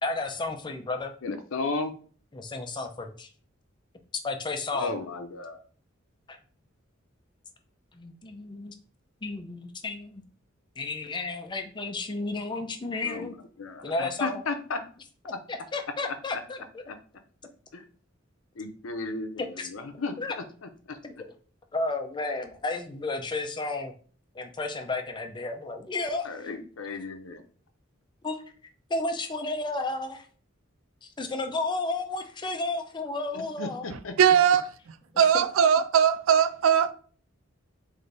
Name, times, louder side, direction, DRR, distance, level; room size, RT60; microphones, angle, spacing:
voice 1, 0.0-1.1 2.3-3.3 4.2-4.9 6.3-6.4 7.9-8.7 9.2-10.2 10.8-13.4 13.8-14.4 15.5-16.8 19.4-19.7 20.2-20.4 21.0-21.1 21.7-23.9 24.3-26.5 28.2-28.4 28.9-30.3 31.0-33.9 35.3-35.4, left 2 dB, 25° left, 0.5 m, -32 dB
voice 2, 1.2-1.9 4.7-5.6 13.0-13.3 13.6-14.8 17.7-17.8 18.6-20.1 20.9-21.0 26.2-27.4 33.6-34.1, left 3 dB, 85° left, 0.6 m, -34 dB
voice 3, 33.9-34.7 35.2-36.9, right 8 dB, 75° right, 0.4 m, -20 dB
3.3 x 2.6 x 3.9 m
head